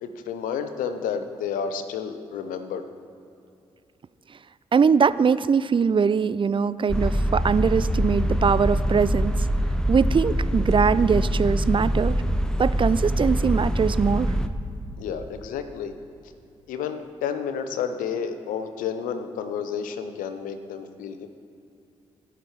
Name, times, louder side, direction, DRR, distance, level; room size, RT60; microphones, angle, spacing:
voice 1, 0.0-2.8 15.0-15.9 16.7-21.3, left 7 dB, 85° left, 9 dB, 0.7 m, -31 dB
voice 2, 4.7-9.3 9.9-12.2 12.6-14.3, right 6 dB, 40° right, 16 dB, 0.4 m, -21 dB
sound 1, 6.9-14.5, equal, 5° left, 0.8 m, -24 dB
13.5 x 5.9 x 4.8 m, 2.6 s
hypercardioid pair, 40°, 14 cm